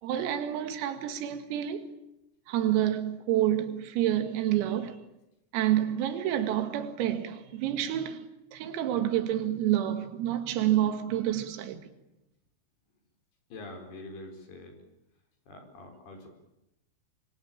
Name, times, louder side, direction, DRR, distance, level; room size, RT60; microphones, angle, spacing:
voice 1, 0.0-1.9 2.5-5.0 5.5-11.8, right 12 dB, 85° right, 4.7 m, -28 dB
voice 2, 13.5-14.8 15.5-16.3, left 2 dB, 50° left, 6.1 m, -45 dB
26.5 x 23.0 x 8.9 m
omnidirectional pair, 5.9 m